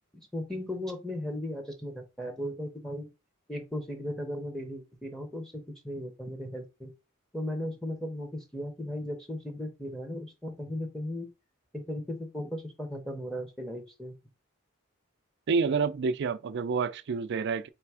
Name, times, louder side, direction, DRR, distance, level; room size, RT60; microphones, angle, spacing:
voice 1, 0.1-3.1 3.5-6.9 7.3-11.3 11.7-14.1, left 1 dB, ahead, 0.7 m, -36 dB
voice 2, 15.5-17.7, right 5 dB, 55° right, 0.4 m, -28 dB
3.4 x 3.2 x 4.7 m
head